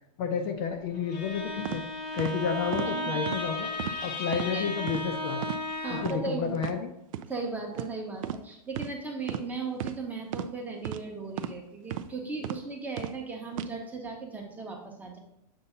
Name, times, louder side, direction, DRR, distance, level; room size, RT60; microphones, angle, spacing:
voice 1, 0.2-1.8 2.1-3.7 4.0-5.4 5.9-6.9, left 6 dB, 35° left, 4 dB, 0.6 m, -31 dB
Bowed string instrument, 0.9-6.3, left 2 dB, 80° left, 1.2 m, -34 dB
sound 1, 1.6-1.8 2.2-2.3 2.7-2.9 3.3-3.4 3.8-4.0 4.3-4.5 4.9-5.0 5.4-5.6 6.0-6.2 6.6-6.7 7.1-7.3 7.7-7.9 8.2-8.4 8.7-8.9 9.3-9.5 9.8-10.0 10.3-10.5 10.8-11.0 11.4-11.6 11.9-12.1 12.4-12.6 13.0-13.2 13.5-13.7, right 10 dB, 55° right, 0.4 m, -34 dB
voice 2, 2.9-3.2 4.5-4.7 5.8-6.5 7.3-15.2, right 4 dB, 10° right, 0 dB, 0.8 m, -37 dB
6.9 x 2.7 x 5.4 m, 0.80 s
hypercardioid pair, 150°, 21 cm